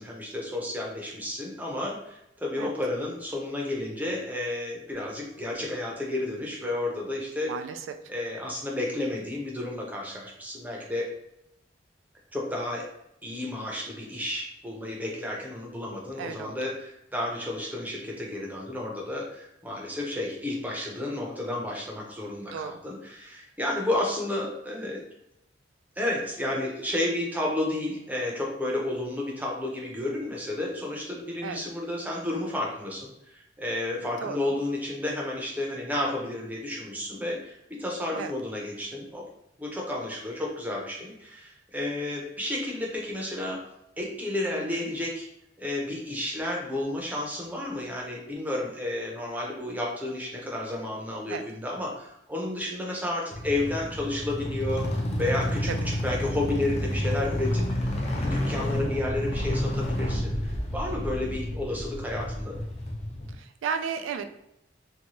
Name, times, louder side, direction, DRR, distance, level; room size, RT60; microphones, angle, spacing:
voice 1, 0.0-7.5 8.1-11.1 12.3-12.9 13.2-25.0 26.0-39.2 39.6-43.6 44.0-45.3 45.6-58.0 58.2-62.6, left 1 dB, 10° right, -2 dB, 0.6 m, -32 dB
voice 2, 7.5-7.8 16.2-16.6 22.5-22.8 31.4-31.6 34.2-34.6 38.2-38.3 44.7-44.9 51.3-51.4 55.7-55.8 63.3-64.2, right 6 dB, 90° right, 9 dB, 0.3 m, -34 dB
sound 1, 53.3-63.3, left 1 dB, 35° left, 0.5 m, -30 dB
2.7 x 2.2 x 2.9 m, 0.83 s
head